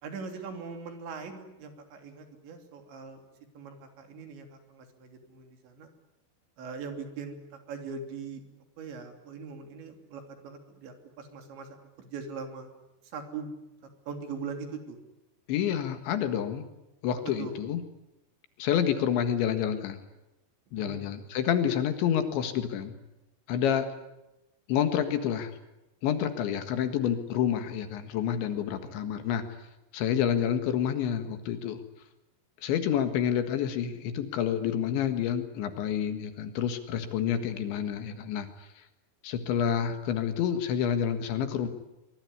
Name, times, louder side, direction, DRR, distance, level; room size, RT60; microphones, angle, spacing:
voice 1, 0.0-3.2 3.5-5.9 6.6-7.4 7.7-8.4 8.8-11.7 12.0-12.7 13.1-13.5 14.1-15.0 17.4-17.6 20.7-21.1 23.7-23.8 28.8-28.9, right 5 dB, 65° right, 5 dB, 5.2 m, -41 dB
voice 2, 15.5-16.6 17.0-17.8 18.6-20.0 20.7-22.9 23.5-23.9 24.7-25.5 26.0-29.4 29.9-31.8 32.6-38.5 39.2-41.7, left 9 dB, 70° left, 8 dB, 3.9 m, -28 dB
24.0 x 23.0 x 9.8 m, 0.95 s
omnidirectional pair, 5.7 m